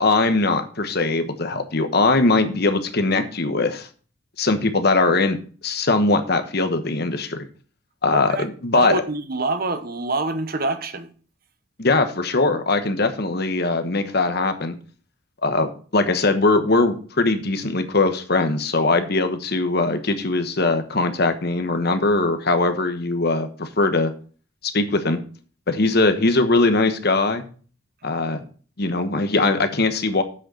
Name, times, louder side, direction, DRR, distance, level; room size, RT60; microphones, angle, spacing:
voice 1, 0.0-3.9 4.4-5.4 5.6-7.4 8.0-9.0 11.8-14.7 15.4-24.1 24.6-25.2 25.7-27.4 28.0-28.4 28.8-30.2, left 3 dB, 50° left, 1.2 m, -21 dB
voice 2, 8.1-8.5 8.7-11.1, right 3 dB, 45° right, 1.0 m, -26 dB
7.9 x 6.6 x 6.3 m
head